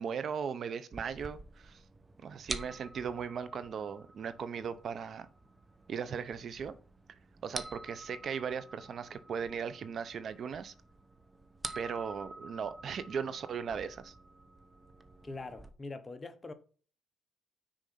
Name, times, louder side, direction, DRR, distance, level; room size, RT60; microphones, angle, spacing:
voice 1, 0.0-1.8 2.2-5.3 5.9-6.7 7.4-10.7 11.7-14.1, right 6 dB, 55° right, 0.8 m, -38 dB
sound 1, 0.9-15.7, right 2 dB, 25° right, 0.9 m, -48 dB
voice 2, 15.2-16.5, left 3 dB, 25° left, 1.1 m, -43 dB
6.5 x 4.9 x 5.8 m
cardioid pair, 90°, 0 cm